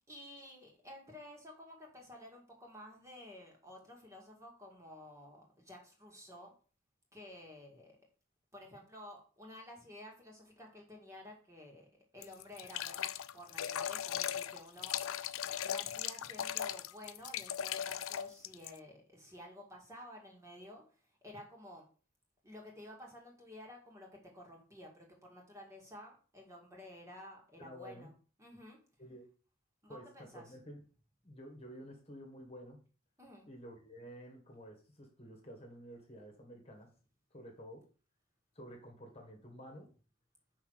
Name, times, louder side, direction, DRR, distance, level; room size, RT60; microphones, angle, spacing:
voice 1, 0.0-6.5 7.1-8.0 8.5-15.2 15.6-21.9 22.4-28.1 28.4-28.8 29.8-30.5 33.2-33.5, left 1 dB, 15° right, 0 dB, 2.1 m, -52 dB
sound 1, 12.2-18.8, left 10 dB, 90° left, 0.5 m, -38 dB
voice 2, 27.6-28.1 29.0-29.3 29.9-30.8 31.2-32.8 33.5-36.9 37.3-37.9 38.6-39.9, equal, 30° left, 2 dB, 1.8 m, -51 dB
5.9 x 4.8 x 6.5 m, 0.38 s
head